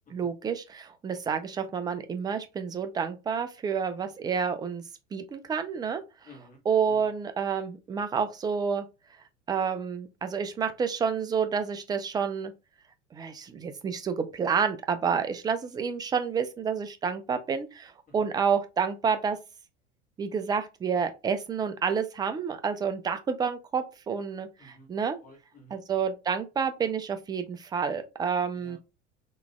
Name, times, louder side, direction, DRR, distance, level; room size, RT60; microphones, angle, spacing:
voice 1, 0.1-4.8 5.1-6.0 6.7-8.9 9.5-12.5 13.1-19.4 20.2-25.2 25.7-28.8, right 6 dB, 10° right, 0.3 m, -29 dB
voice 2, 6.2-6.6 6.9-7.1 18.1-18.2 24.6-24.9 25.2-25.8 28.5-28.8, equal, 20° left, 1.5 m, -52 dB
3.8 x 2.9 x 2.3 m
figure-of-eight pair, 75°, 36 cm